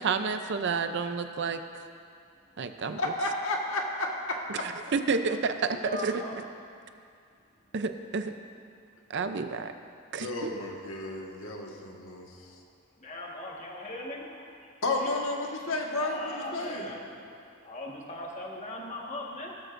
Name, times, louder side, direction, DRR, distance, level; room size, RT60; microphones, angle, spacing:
voice 1, 0.0-1.6 2.6-3.0 4.5-5.5 6.0-6.2 7.7-8.3 9.1-9.7 10.1-10.5, right 5 dB, 55° right, 8 dB, 0.6 m, -30 dB
voice 2, 3.0-4.4 10.2-12.3 14.8-16.8, left 2 dB, 65° left, 0 dB, 1.6 m, -32 dB
voice 3, 5.3-6.4 13.0-14.4 14.9-15.1 15.9-17.4 17.6-19.5, left 1 dB, 35° left, -2 dB, 1.6 m, -39 dB
17.5 x 13.0 x 2.6 m, 2.3 s
head